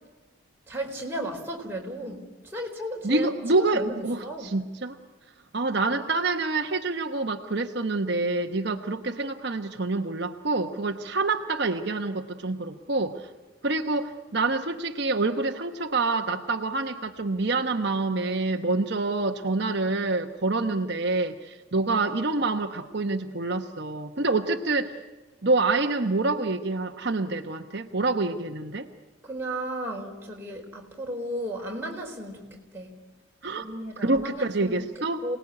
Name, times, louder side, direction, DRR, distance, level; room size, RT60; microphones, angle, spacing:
voice 1, 0.7-4.5 29.2-32.9 33.6-34.8 35.2-35.4, right 1 dB, 10° right, -1 dB, 4.3 m, -34 dB
voice 2, 3.0-5.0 5.5-13.3 13.6-25.0 25.4-28.9 33.4-33.6 34.0-35.2, right 3 dB, 55° right, 5 dB, 1.0 m, -27 dB
27.5 x 19.5 x 9.8 m, 1.3 s
head